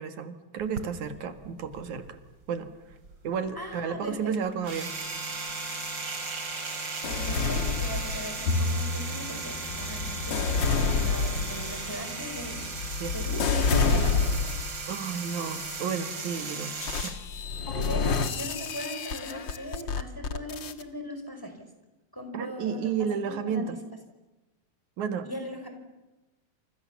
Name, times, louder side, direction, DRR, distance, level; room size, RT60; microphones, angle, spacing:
voice 1, 0.0-2.2 2.5-2.7 3.2-4.9 13.0-13.1 14.9-16.7 17.0-17.2 17.7-17.9 22.3-23.8 25.0-25.3, right 7 dB, 85° right, 9 dB, 3.2 m, -32 dB
sound 1, 0.6-2.4 2.7-17.1, right 3 dB, 40° right, 3.6 m, -36 dB
voice 2, 3.5-4.3 7.0-10.5 10.9-12.6 13.1-14.3 17.9-21.5 22.1-22.9 23.3-23.7 25.2-25.7, equal, 5° left, 5 dB, 4.8 m, -38 dB
sound 2, 7.0-8.6 9.3-14.8 15.4-15.8 16.8-20.8, left 5 dB, 45° left, 1.8 m, -29 dB
Bowed string instrument, 8.5-14.8, left 2 dB, 80° left, 3.4 m, -36 dB
29.5 x 28.0 x 7.2 m, 1.1 s
omnidirectional pair, 3.3 m